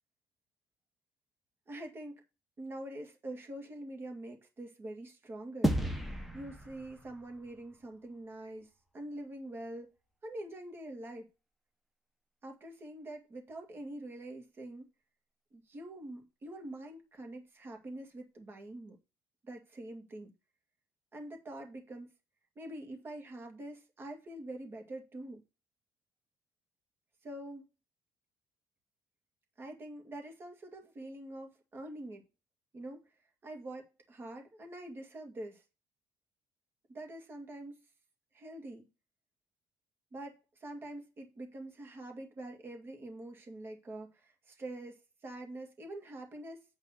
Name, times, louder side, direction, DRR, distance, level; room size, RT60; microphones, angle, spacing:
voice 1, 1.7-2.2 2.6-5.8 6.3-9.9 10.2-11.3 12.4-14.9 15.5-19.0 19.4-20.3 21.1-22.1 22.6-25.4 27.2-27.7 29.6-32.2 32.7-33.1 33.4-35.6 36.9-37.8 38.3-38.9 40.1-46.6, right 1 dB, 25° right, 2.1 m, -45 dB
sound 1, 5.6-8.2, equal, ahead, 0.9 m, -34 dB
8.7 x 3.5 x 6.4 m
cardioid pair, 165°, 9 cm